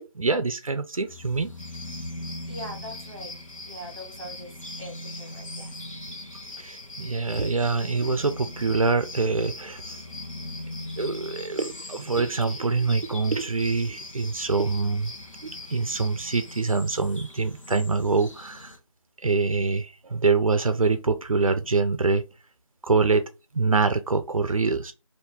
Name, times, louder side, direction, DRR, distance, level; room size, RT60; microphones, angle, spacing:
voice 1, 0.1-1.5 6.6-10.0 11.0-15.1 15.4-18.7 19.2-22.2 22.8-23.3 23.5-24.9, right 4 dB, 90° right, 0.5 m, -25 dB
sound 1, 1.1-18.8, left 1 dB, 70° left, 0.9 m, -42 dB
sound 2, 1.6-16.6, left 2 dB, 85° left, 1.4 m, -43 dB
voice 2, 2.5-3.4 3.6-5.7, equal, 25° right, 1.2 m, -41 dB
2.7 x 2.6 x 3.5 m
figure-of-eight pair, 175°, 17 cm